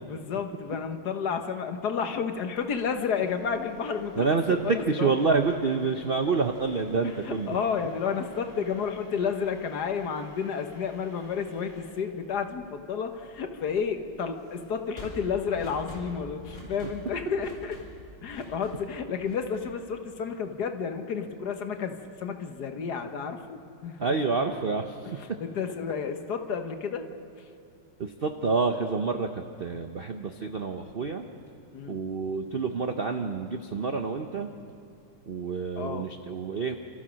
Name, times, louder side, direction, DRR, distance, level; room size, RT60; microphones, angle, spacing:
voice 1, 0.0-4.2 4.6-5.1 7.0-17.8 18.2-24.1 25.0-27.0 27.4-27.5 31.7-32.0 35.8-36.1, left 6 dB, 60° left, 7 dB, 1.5 m, -31 dB
sound 1, 2.6-20.5, left 1 dB, 20° left, 5.5 m, -50 dB
voice 2, 4.2-7.6 24.0-25.2 28.0-31.3 31.9-34.5 35.3-36.8, right 4 dB, 70° right, 6 dB, 0.5 m, -28 dB
29.0 x 14.0 x 6.4 m, 2.6 s
omnidirectional pair, 2.2 m